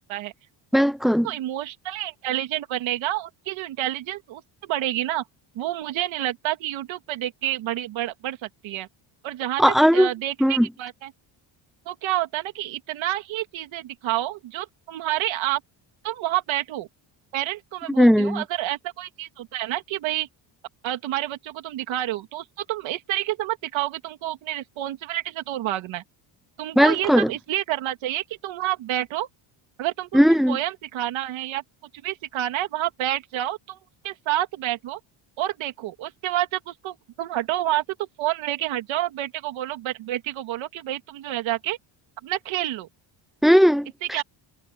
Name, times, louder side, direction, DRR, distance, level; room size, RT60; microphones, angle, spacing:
voice 1, 0.7-1.3 9.6-10.1 10.4-10.7 18.0-18.4 26.8-27.3 30.1-30.6 43.4-44.2, equal, ahead, 0.4 m, -17 dB
voice 2, 1.2-5.2 5.5-8.9 9.2-11.1 11.9-15.6 16.0-16.9 17.3-20.3 20.8-26.0 26.6-29.3 29.8-30.2 30.5-31.6 32.0-33.8 34.0-35.0 35.4-41.8 42.2-42.9 44.1-44.2, right 14 dB, 70° right, 2.6 m, -29 dB
cardioid pair, 180°, 48 cm